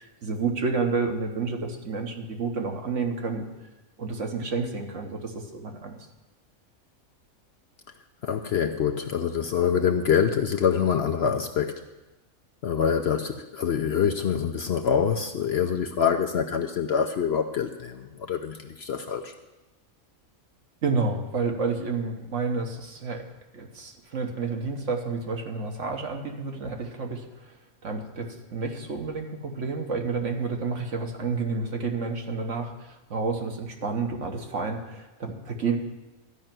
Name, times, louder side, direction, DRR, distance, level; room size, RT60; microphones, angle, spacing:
voice 1, 0.0-3.5 4.0-6.0 20.8-23.2 23.5-27.5 27.8-35.8, right 4 dB, 60° right, 3 dB, 1.5 m, -30 dB
voice 2, 8.2-11.7 12.6-19.3, left 7 dB, 60° left, 5 dB, 0.7 m, -25 dB
13.0 x 5.6 x 9.0 m, 1.1 s
omnidirectional pair, 1.5 m